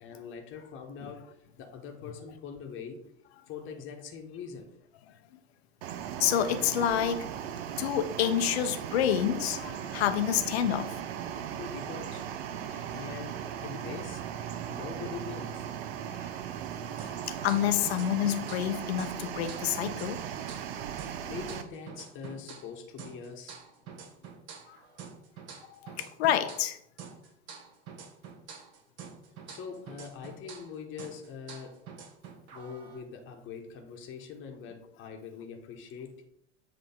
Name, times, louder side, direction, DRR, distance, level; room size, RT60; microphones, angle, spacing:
voice 1, 0.0-3.0 3.5-4.8 11.5-12.3 12.7-14.2 14.7-16.0 21.2-23.6 29.5-31.8 32.5-36.3, left 6 dB, 35° left, 1.1 m, -43 dB
sound 1, 5.8-21.6, right 9 dB, 60° right, 0.7 m, -38 dB
voice 2, 6.2-7.3 7.8-10.9 16.1-16.2 17.3-20.2 24.7-24.8 25.8-26.8, left 10 dB, 65° left, 0.7 m, -28 dB
sound 2, 17.0-18.7 19.0-22.7 23.0-26.7 27.0-30.7 31.0-33.0, right 6 dB, 45° right, 1.3 m, -47 dB
7.6 x 3.1 x 4.2 m
figure-of-eight pair, 80°, 35 cm